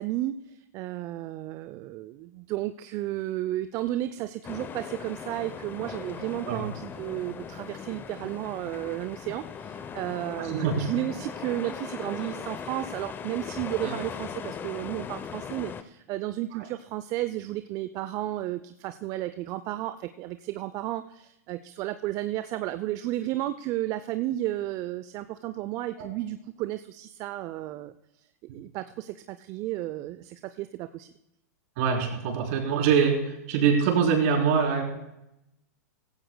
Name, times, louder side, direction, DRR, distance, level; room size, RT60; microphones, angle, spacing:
voice 1, 0.0-27.9 28.5-31.1, right 15 dB, 40° right, 11 dB, 0.5 m, -33 dB
sound 1, 4.4-15.8, left 7 dB, 25° left, 0.7 m, -39 dB
voice 2, 10.4-10.8 11.6-11.7 12.1-12.2 13.8-13.9 16.5-16.6 26.0-26.1 31.8-34.8, right 6 dB, 55° right, 0 dB, 3.8 m, -24 dB
16.5 x 15.5 x 2.3 m, 0.86 s
hypercardioid pair, 110°, 9 cm